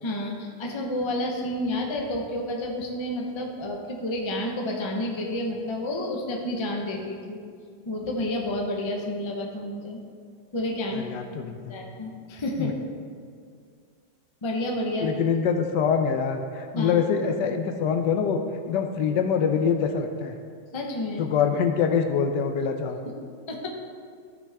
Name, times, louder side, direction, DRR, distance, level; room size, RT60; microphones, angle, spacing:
voice 1, 0.0-7.4 7.8-10.0 10.5-11.0 11.4-12.7 14.4-15.1 16.7-17.0 20.7-21.2 23.5-23.7, left 1 dB, 25° left, 0 dB, 0.6 m, -30 dB
voice 2, 10.9-11.7 12.6-12.7 15.0-18.4 18.7-20.4 21.2-23.0, left 6 dB, 75° left, 5 dB, 1.2 m, -24 dB
13.0 x 6.1 x 3.5 m, 2.1 s
omnidirectional pair, 2.0 m